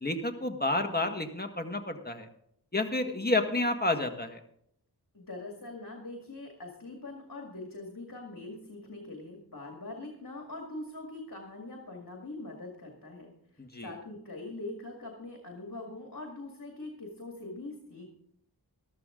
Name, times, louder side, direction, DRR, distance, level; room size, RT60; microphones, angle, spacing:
voice 1, 0.0-2.3 2.7-4.4 13.6-13.9, left 2 dB, 25° left, 4 dB, 1.7 m, -30 dB
voice 2, 5.1-18.1, left 2 dB, 55° left, 1 dB, 2.2 m, -43 dB
14.0 x 13.0 x 3.8 m, 0.70 s
wide cardioid pair, 45°, 40 cm